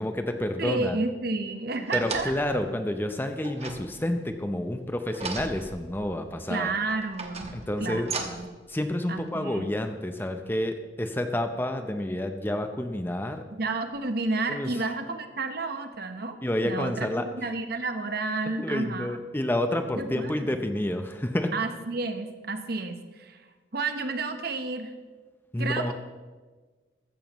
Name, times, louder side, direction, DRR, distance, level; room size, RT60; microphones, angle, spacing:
voice 1, 0.0-1.0 1.9-6.7 7.5-8.1 8.7-13.4 14.5-14.7 16.4-17.3 18.6-21.5 25.5-25.9, left 1 dB, 10° left, 7 dB, 0.6 m, -29 dB
voice 2, 0.6-2.3 6.5-7.5 7.8-8.5 9.1-9.7 13.5-16.4 16.6-19.2 19.9-20.6 21.5-23.4 23.7-24.9 25.6-25.9, right 3 dB, 55° right, 7 dB, 1.0 m, -31 dB
sound 1, 1.7-2.6 3.4-4.4 5.1-6.2 6.9-8.6 9.3-9.4, right 4 dB, 35° right, 1.2 m, -37 dB
14.5 x 14.0 x 3.1 m, 1.4 s
head